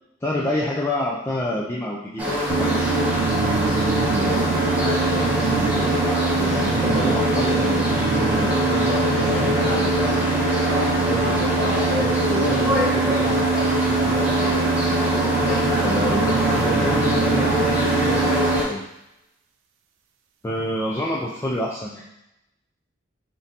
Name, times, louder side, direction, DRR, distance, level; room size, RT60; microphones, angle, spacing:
voice 1, 0.2-2.9 13.0-13.1 20.4-22.0, left 1 dB, 15° left, -5 dB, 0.4 m, -26 dB
sound 1, 2.2-18.6, left 1 dB, 10° right, 0.8 m, -23 dB
sound 2, 2.5-18.6, right 5 dB, 70° right, 0.4 m, -24 dB
voice 2, 4.1-10.5 10.9-18.9, equal, 30° left, -4 dB, 1.0 m, -30 dB
3.7 x 3.6 x 2.8 m, 0.86 s
head